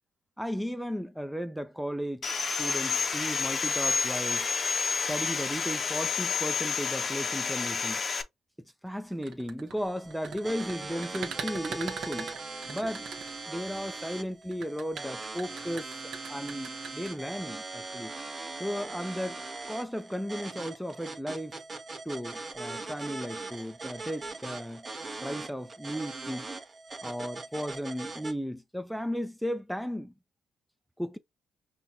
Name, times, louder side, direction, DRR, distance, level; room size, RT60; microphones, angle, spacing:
voice 1, 0.4-4.5 5.1-8.0 8.8-12.3 12.7-13.1 13.5-16.0 16.3-18.1 18.6-21.6 22.0-24.9 25.2-26.5 27.0-30.1 31.0-31.2, equal, ahead, 0.3 m, -35 dB
Sawing, 2.2-8.2, left 5 dB, 40° left, 0.6 m, -29 dB
sound 1, 9.1-13.8 14.5-17.1, right 6 dB, 70° right, 0.8 m, -40 dB
sound 2, 9.8-28.3, right 3 dB, 30° right, 0.9 m, -40 dB
5.5 x 2.3 x 2.7 m
cardioid pair, 90°, 0 cm